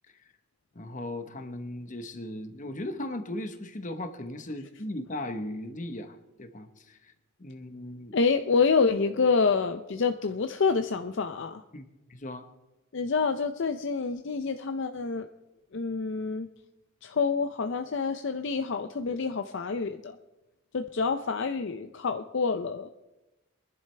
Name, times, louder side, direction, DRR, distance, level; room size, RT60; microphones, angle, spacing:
voice 1, 0.7-7.1 7.4-8.2 11.7-12.5, left 1 dB, 35° left, 8 dB, 1.0 m, -37 dB
voice 2, 8.1-11.6 12.9-15.3 15.7-16.5 17.0-20.2 20.7-22.9, left 4 dB, 55° left, 7 dB, 0.5 m, -27 dB
23.5 x 11.0 x 3.3 m, 1.0 s
head